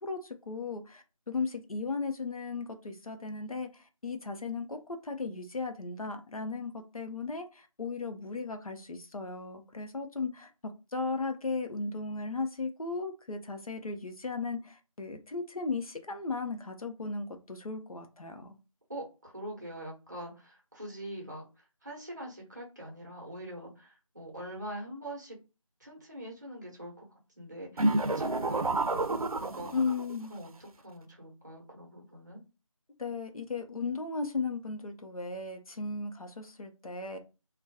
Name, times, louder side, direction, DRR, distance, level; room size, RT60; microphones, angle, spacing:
voice 1, 0.0-18.6 29.7-30.3 33.0-37.2, left 4 dB, 85° left, 5 dB, 0.6 m, -36 dB
voice 2, 18.9-21.4 21.8-25.3 25.8-27.8 28.1-29.7 30.3-32.4, right 1 dB, 30° right, -1 dB, 0.9 m, -43 dB
sound 1, 27.8-30.2, right 2 dB, 85° right, 0.5 m, -29 dB
2.2 x 2.2 x 2.7 m, 0.30 s
figure-of-eight pair, 170°, 18 cm